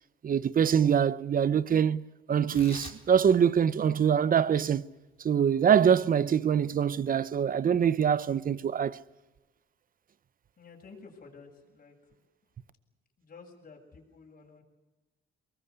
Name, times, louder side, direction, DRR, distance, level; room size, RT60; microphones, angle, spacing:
voice 1, 0.2-4.8 5.2-9.0, right 8 dB, 45° right, 0.8 m, -24 dB
Tearing, 2.4-9.1, left 4 dB, 30° left, 4.5 m, -53 dB
voice 2, 10.6-12.3 13.2-14.6, left 4 dB, 45° left, 7.2 m, -52 dB
23.5 x 20.0 x 8.2 m
cardioid pair, 90°, 20 cm